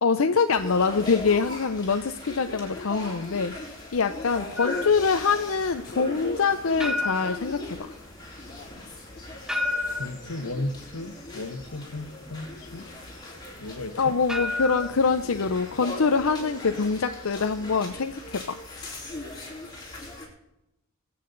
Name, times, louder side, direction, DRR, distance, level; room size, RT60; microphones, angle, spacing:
voice 1, 0.0-3.5 3.9-7.8 14.0-18.6, left 5 dB, 65° left, 8 dB, 0.6 m, -24 dB
sound 1, 0.6-20.3, left 2 dB, 20° left, 4.0 m, -39 dB
sound 2, 4.6-15.9, left 2 dB, 5° right, 0.6 m, -34 dB
voice 2, 10.0-12.9 13.6-14.1, left 2 dB, 85° left, 9 dB, 1.2 m, -35 dB
23.0 x 8.6 x 3.9 m, 0.87 s
head